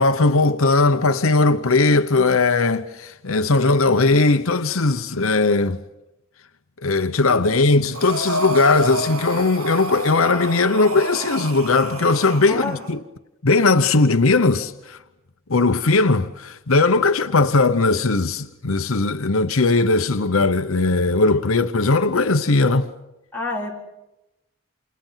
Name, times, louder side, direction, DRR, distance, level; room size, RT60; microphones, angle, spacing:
voice 1, 0.0-5.8 6.8-13.0 13.4-15.0 15.5-22.9, left 3 dB, 75° left, 1.0 m, -18 dB
Breathing, 7.9-12.9, right 1 dB, 90° right, 1.7 m, -29 dB
voice 2, 12.5-12.8 23.3-23.7, left 2 dB, 10° left, 4.1 m, -28 dB
29.5 x 28.0 x 5.7 m
head